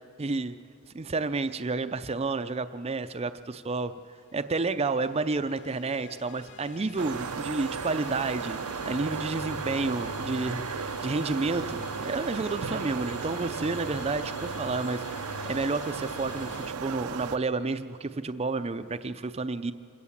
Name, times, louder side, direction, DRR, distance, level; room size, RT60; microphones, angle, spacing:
voice 1, 0.2-0.6 0.9-3.9 4.3-8.6 8.8-19.7, right 3 dB, 25° right, 9 dB, 0.5 m, -30 dB
sound 1, 4.5-16.7, left 6 dB, 50° left, 0.4 m, -45 dB
sound 2, 7.0-17.4, right 6 dB, 85° right, 0.6 m, -35 dB
26.5 x 17.0 x 7.3 m, 2.7 s
head